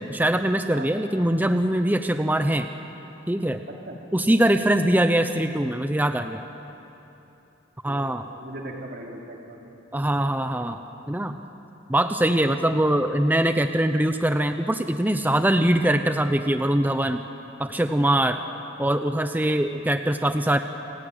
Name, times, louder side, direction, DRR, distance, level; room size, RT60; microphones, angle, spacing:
voice 1, 0.0-2.7 3.3-3.6 4.1-6.5 7.8-8.3 9.9-10.8 11.1-11.4 11.9-17.2 17.6-18.4 18.8-20.6, right 1 dB, 10° right, 7 dB, 0.7 m, -22 dB
voice 2, 3.7-4.0 4.2-4.8 7.9-9.7, right 1 dB, 55° right, 0 dB, 3.1 m, -40 dB
29.5 x 17.0 x 9.4 m, 3.0 s
head